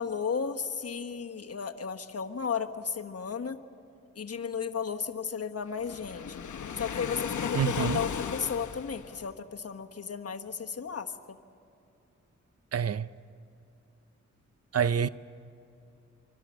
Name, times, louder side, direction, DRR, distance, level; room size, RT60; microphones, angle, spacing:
voice 1, 0.0-3.6 4.1-6.4 6.8-11.4, left 6 dB, 55° left, 1.3 m, -34 dB
Waves surf, 5.8-9.3, left 7 dB, 75° left, 1.0 m, -35 dB
voice 2, 7.5-8.0 12.7-13.1 14.7-15.1, right 8 dB, 55° right, 0.6 m, -27 dB
26.0 x 25.0 x 6.2 m
cardioid pair, 70°, 30 cm